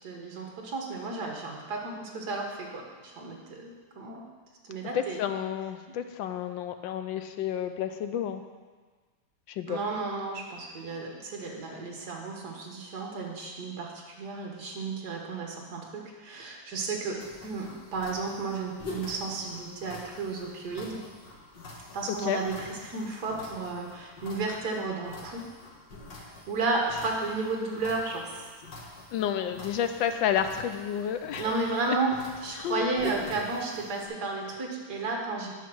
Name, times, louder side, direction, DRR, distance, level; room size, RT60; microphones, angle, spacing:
voice 1, 0.0-4.2 4.6-5.3 5.9-6.0 9.7-21.0 21.9-25.5 26.5-28.5 31.4-35.6, right 3 dB, 55° right, 0 dB, 1.9 m, -33 dB
voice 2, 4.9-8.4 9.5-9.8 22.1-22.4 29.1-31.5 31.9-32.0 32.6-32.9, left 9 dB, 75° left, 8 dB, 1.3 m, -30 dB
sound 1, 17.2-34.1, left 2 dB, 60° left, 2.2 m, -45 dB
9.3 x 5.8 x 6.2 m, 1.4 s
omnidirectional pair, 2.2 m